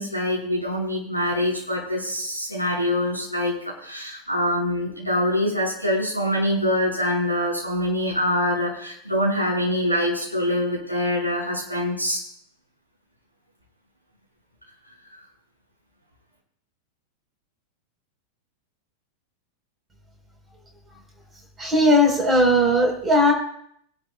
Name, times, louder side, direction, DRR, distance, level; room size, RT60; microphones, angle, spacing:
voice 1, 0.0-12.2, left 1 dB, 90° right, -5 dB, 7.0 m, -24 dB
voice 2, 21.6-23.3, equal, 15° right, 2 dB, 4.4 m, -18 dB
26.5 x 11.5 x 2.4 m, 0.70 s
figure-of-eight pair, 90°, 0 cm